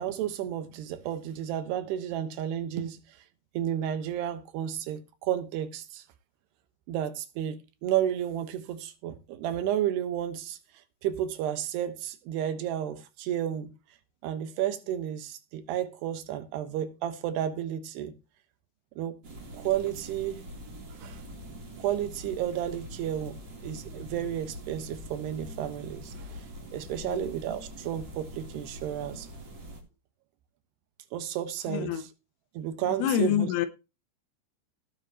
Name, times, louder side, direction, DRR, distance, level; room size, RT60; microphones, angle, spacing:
voice 1, 0.0-3.2 3.5-6.0 6.9-10.6 11.0-13.7 14.2-18.1 19.0-19.2 19.5-20.4 21.0-21.2 21.8-23.4 23.6-29.3 31.1-32.1 32.5-33.5, right 10 dB, 70° right, 2.9 m, -32 dB
sound 1, 19.2-29.8, equal, 35° right, 3.9 m, -44 dB
voice 2, 31.7-32.0 33.0-33.7, left 11 dB, 90° left, 2.2 m, -27 dB
18.5 x 7.4 x 2.9 m
omnidirectional pair, 5.7 m